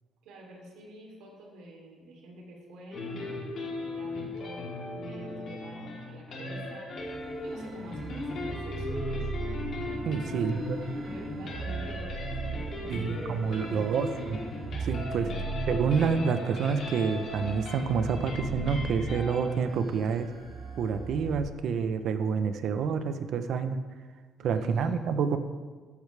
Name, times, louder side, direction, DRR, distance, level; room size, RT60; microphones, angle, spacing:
voice 1, 0.2-6.9 7.4-9.3 10.2-10.7 11.0-14.0 15.2-15.4 24.4-24.9, right 1 dB, 85° right, -1 dB, 3.2 m, -47 dB
sound 1, 2.9-19.6, left 2 dB, 55° left, 3.4 m, -37 dB
sound 2, 7.0-21.4, right 4 dB, 35° right, 2.1 m, -39 dB
voice 2, 10.0-10.8 12.9-14.4 14.8-15.3 15.7-20.3 20.8-23.8 24.4-25.4, right 6 dB, 60° right, 9 dB, 0.8 m, -28 dB
15.0 x 8.4 x 3.4 m, 1.5 s
cardioid pair, 130°, 0 cm